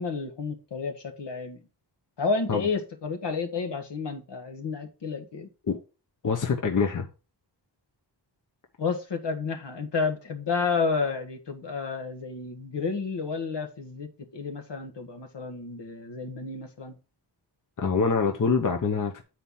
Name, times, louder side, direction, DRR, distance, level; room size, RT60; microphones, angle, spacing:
voice 1, 0.0-1.6 2.2-5.5 8.8-14.1 14.3-16.9, left 4 dB, 75° left, 1.5 m, -31 dB
voice 2, 6.2-7.1 17.8-19.2, left 5 dB, 45° left, 0.9 m, -25 dB
8.0 x 4.4 x 5.5 m
wide cardioid pair, 145°, 42 cm